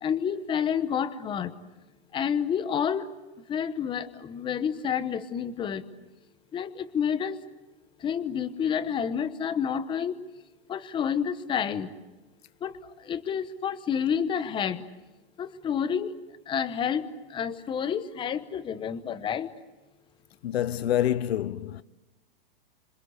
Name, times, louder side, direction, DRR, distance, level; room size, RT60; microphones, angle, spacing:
voice 1, 0.0-1.5 2.1-3.1 3.5-5.8 6.5-7.4 8.0-10.2 10.7-11.9 12.6-12.8 13.0-14.8 15.4-16.1 16.5-19.5, left 7 dB, 15° left, 1.0 m, -29 dB
voice 2, 20.4-21.8, left 11 dB, 80° left, 0.9 m, -27 dB
27.0 x 26.0 x 8.1 m
supercardioid pair, 150°, 31 cm